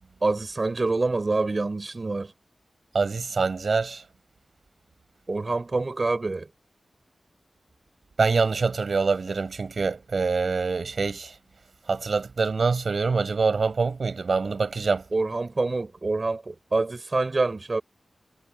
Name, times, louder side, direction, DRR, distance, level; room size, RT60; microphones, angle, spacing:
voice 1, 0.2-2.3 5.3-6.5 15.1-17.8, right 3 dB, 45° right, 7.6 m, -26 dB
voice 2, 2.9-4.0 8.2-11.3 11.9-15.0, right 4 dB, 65° right, 7.2 m, -25 dB
cardioid pair, 50°, 0 cm